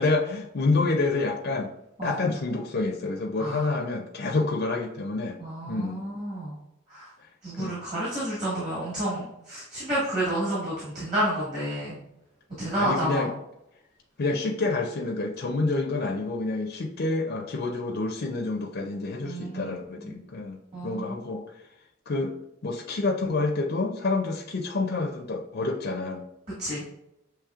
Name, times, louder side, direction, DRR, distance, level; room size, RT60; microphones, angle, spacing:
voice 1, 0.0-1.7 2.0-5.4 5.7-6.0 7.6-7.8 12.7-13.3 14.2-21.4 22.1-22.3 22.6-26.2, left 3 dB, 50° left, 1 dB, 0.5 m, -28 dB
voice 2, 3.4-3.8 5.4-6.6 6.9-7.1 7.4-12.0 12.6-13.3 19.2-19.7 20.0-20.2 20.7-21.2 26.6-26.8, right 1 dB, 30° right, -9 dB, 1.7 m, -30 dB
7.1 x 3.0 x 2.4 m, 0.86 s
head